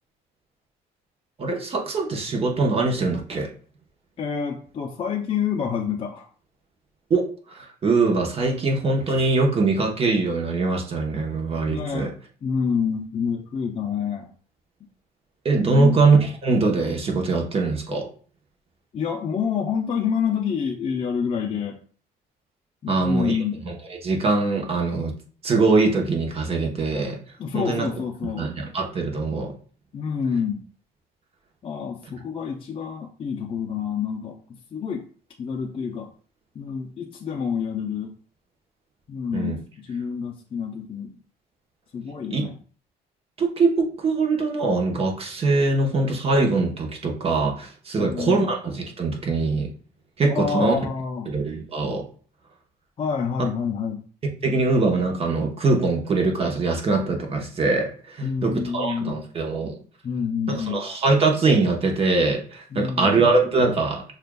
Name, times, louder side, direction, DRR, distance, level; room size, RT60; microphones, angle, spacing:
voice 1, 1.4-3.5 7.1-12.1 15.4-18.1 22.9-23.4 23.6-23.8 24.0-25.1 25.4-27.2 27.5-27.9 28.2-29.5 39.3-39.6 42.3-42.5 43.4-49.7 50.2-50.8 51.3-52.0 53.4-53.5 54.4-59.7 60.5-64.0, right 3 dB, 35° right, 1 dB, 1.0 m, -22 dB
voice 2, 4.2-6.3 11.6-12.1 12.4-14.3 15.7-16.0 18.9-21.8 22.8-23.6 27.4-28.5 29.9-30.6 31.6-35.0 35.4-36.1 36.6-38.1 39.1-41.1 41.9-42.5 48.0-48.5 50.3-51.3 53.0-54.0 58.2-59.2 60.0-60.8 62.7-63.1, left 6 dB, 35° left, 0 dB, 0.5 m, -28 dB
6.5 x 2.4 x 2.2 m, 0.42 s
cardioid pair, 110°, 17 cm